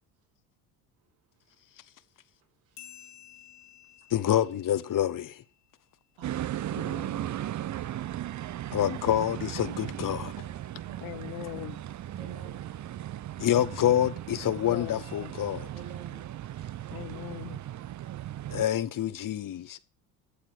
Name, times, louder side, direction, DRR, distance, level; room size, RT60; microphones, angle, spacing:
sound 1, 2.8-5.8, left 11 dB, 90° left, 3.3 m, -53 dB
voice 1, 4.1-5.4 8.7-10.3 13.4-15.7 18.5-19.8, left 11 dB, 45° left, 1.0 m, -27 dB
sound 2, 6.2-18.6, right 12 dB, 40° right, 0.7 m, -37 dB
voice 2, 6.2-6.8 10.8-11.3 12.1-12.6 15.7-16.2 16.6-16.9, right 7 dB, 70° right, 6.1 m, -48 dB
voice 3, 6.7-7.1 11.0-11.7 14.7-15.3 16.9-17.6, left 20 dB, 70° left, 0.8 m, -40 dB
13.5 x 7.0 x 6.4 m
hypercardioid pair, 75°, 47 cm